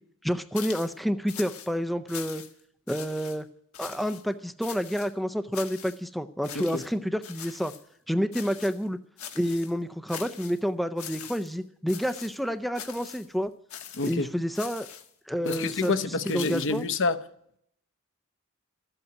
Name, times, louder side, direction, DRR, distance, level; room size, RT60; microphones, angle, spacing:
voice 1, 0.2-2.4 2.9-3.5 3.8-7.7 8.1-9.0 9.3-13.5 14.0-14.9 15.3-16.8, equal, ahead, 0.5 m, -29 dB
sound 1, 0.5-1.0 1.3-1.7 2.1-2.6 2.9-3.4 3.7-4.2 4.6-5.1 5.5-6.0 6.4-6.9 7.2-7.8 8.3-8.8 9.2-9.7 10.1-10.6 11.0-11.6 11.9-12.4 12.7-13.3 13.7-14.2 14.5-15.1 15.5-16.9, left 9 dB, 85° left, 1.6 m, -42 dB
voice 2, 14.0-14.3 15.4-17.2, left 3 dB, 60° left, 0.9 m, -28 dB
13.5 x 8.0 x 9.5 m
head